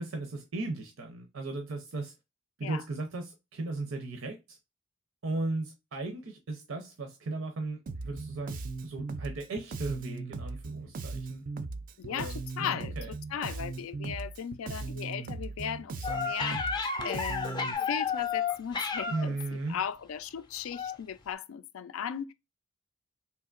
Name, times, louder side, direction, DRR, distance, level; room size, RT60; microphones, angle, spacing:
voice 1, 0.0-2.1 2.6-4.6 5.2-11.4 12.1-13.1 19.1-19.8, right 2 dB, 85° right, 0.6 m, -36 dB
Bass guitar, 7.9-17.7, right 3 dB, 45° right, 0.3 m, -38 dB
voice 2, 12.0-19.4 19.7-22.3, left 8 dB, 85° left, 0.4 m, -37 dB
sound 1, 16.0-19.4 20.7-21.0 21.3-21.4, left 5 dB, 20° left, 0.4 m, -32 dB
3.4 x 2.7 x 2.4 m
head